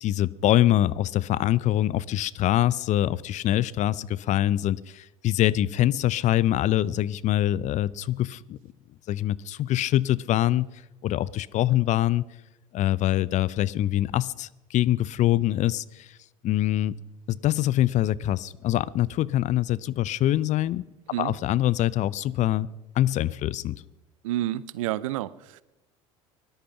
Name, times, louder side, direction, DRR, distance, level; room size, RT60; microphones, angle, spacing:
voice 1, 0.0-8.6 9.1-10.7 11.0-12.2 12.7-16.2 16.4-16.9 17.3-20.8 21.2-22.7 23.0-23.8, left 13 dB, 45° left, 21 dB, 0.6 m, -24 dB
voice 2, 24.2-25.6, right 14 dB, 70° right, 20 dB, 0.6 m, -29 dB
19.0 x 12.0 x 5.9 m, 0.97 s
hypercardioid pair, 70°, 17 cm